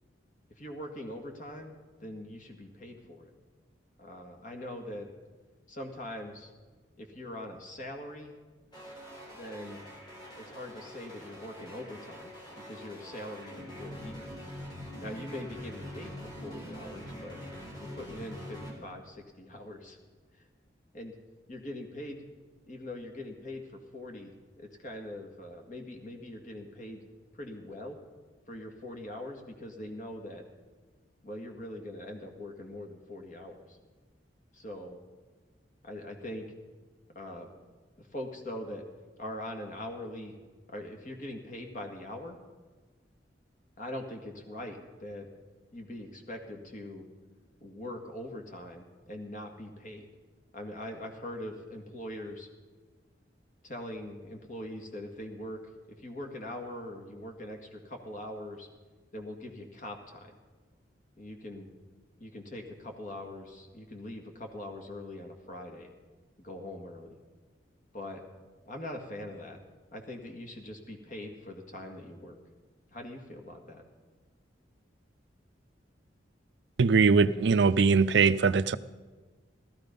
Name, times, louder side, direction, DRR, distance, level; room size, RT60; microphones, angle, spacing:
voice 1, 0.6-3.3 4.0-5.1 5.7-6.5 7.0-8.4 9.3-9.9 10.3-14.2 15.0-17.4 17.8-20.0 20.9-21.1 21.5-22.2 22.7-27.1 27.3-28.0 28.5-30.4 31.2-33.8 34.5-35.0 35.8-36.5 37.2-37.5 38.0-38.9 39.2-40.4 40.7-42.4 43.8-45.3 45.7-47.0 47.6-50.1 50.5-52.5 53.6-55.6 56.0-58.7 59.1-60.4 61.2-61.7 62.2-65.9 66.4-67.2 67.9-68.2 68.7-69.6 69.9-72.4 72.9-73.8, left 1 dB, 45° left, 1.9 m, -42 dB
sound 1, 8.7-18.7, equal, 25° left, 3.5 m, -44 dB
voice 2, 76.8-78.8, right 5 dB, 70° right, 0.4 m, -22 dB
15.5 x 13.5 x 5.3 m
head